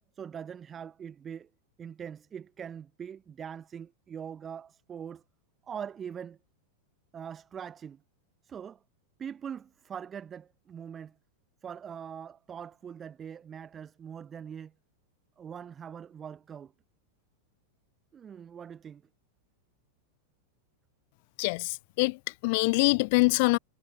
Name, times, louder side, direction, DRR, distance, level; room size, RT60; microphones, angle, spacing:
voice 1, 0.1-1.5 1.8-5.2 5.6-6.4 7.1-8.0 8.4-8.8 9.2-11.2 11.6-14.7 15.4-16.7 18.1-19.0, right 8 dB, 20° right, 2.5 m, -42 dB
voice 2, 21.4-23.6, left 27 dB, 45° left, 1.2 m, -25 dB
figure-of-eight pair, 90°, 0 cm